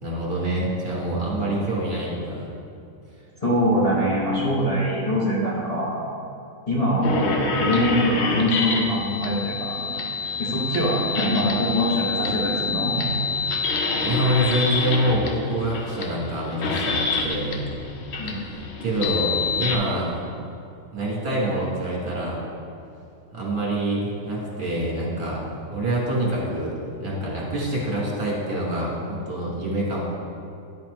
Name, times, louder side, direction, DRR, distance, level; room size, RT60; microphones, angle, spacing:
voice 1, 0.0-2.5 14.0-17.6 18.8-20.2 20.9-22.4 23.3-30.0, right 1 dB, 50° right, -5 dB, 1.7 m, -26 dB
voice 2, 3.4-6.0 6.7-7.3 7.6-10.0 10.4-12.9 18.2-18.4, equal, 30° left, -7 dB, 0.9 m, -23 dB
sound 1, 7.0-19.8, left 4 dB, 60° left, 0.8 m, -27 dB
9.4 x 4.2 x 3.1 m, 2.6 s
omnidirectional pair, 1.4 m